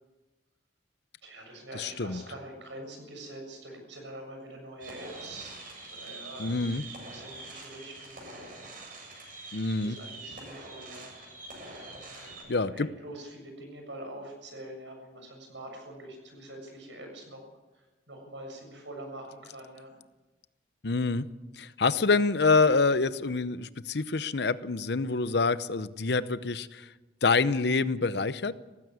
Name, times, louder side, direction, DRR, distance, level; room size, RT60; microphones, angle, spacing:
voice 1, 1.2-5.6 6.0-8.5 9.8-11.1 12.0-17.4 17.7-19.9, right 1 dB, 80° right, 2 dB, 7.3 m, -45 dB
voice 2, 1.7-2.2 6.4-6.8 9.5-10.0 12.2-12.9 20.8-21.3 21.6-26.9 27.2-28.5, left 4 dB, 60° left, 14 dB, 0.8 m, -26 dB
sound 1, 4.8-12.4, right 2 dB, 50° right, 7.5 m, -44 dB
17.5 x 15.5 x 9.6 m, 1.1 s
head